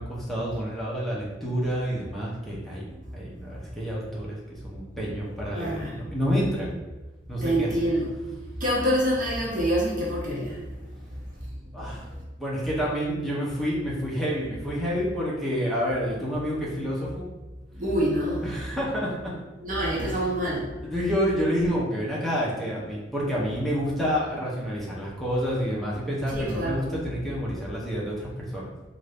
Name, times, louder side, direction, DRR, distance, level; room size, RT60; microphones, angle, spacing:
voice 1, 0.0-2.9 3.1-6.8 7.3-7.7 11.7-12.1 12.4-17.3 18.4-19.4 20.0-20.3 20.8-28.7, equal, ahead, -6 dB, 0.7 m, -29 dB
voice 2, 5.5-5.9 7.4-8.1 8.6-10.5 17.8-18.5 19.6-20.6 26.3-26.8, equal, 45° right, -4 dB, 0.6 m, -26 dB
2.7 x 2.4 x 3.3 m, 1.2 s
head